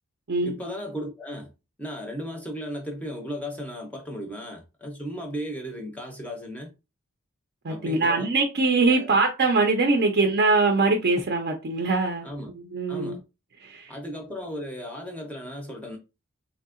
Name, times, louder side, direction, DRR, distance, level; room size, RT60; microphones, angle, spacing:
voice 1, 0.4-1.5 1.8-6.7 7.7-8.3 8.9-9.2 10.0-10.2 12.2-12.5 12.9-13.2 13.9-16.0, equal, 5° left, 0.5 m, -35 dB
voice 2, 7.6-12.3 12.5-13.2 13.6-13.9, right 3 dB, 50° right, 0.5 m, -22 dB
3.5 x 2.7 x 2.4 m
head